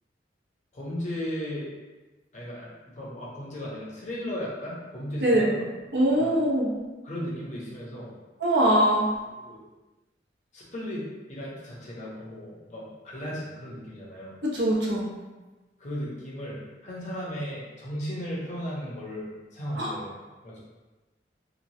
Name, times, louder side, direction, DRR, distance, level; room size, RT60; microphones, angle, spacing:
voice 1, 0.7-1.7 2.3-5.5 6.0-6.3 7.0-8.1 9.4-9.6 10.5-14.3 15.8-20.2 20.4-20.6, equal, 45° left, -5 dB, 0.7 m, -36 dB
voice 2, 5.2-5.6 5.9-6.7 8.4-9.1 14.5-15.1 19.7-19.9, right 1 dB, 80° right, -6 dB, 0.9 m, -22 dB
3.0 x 2.2 x 2.7 m, 1.2 s
head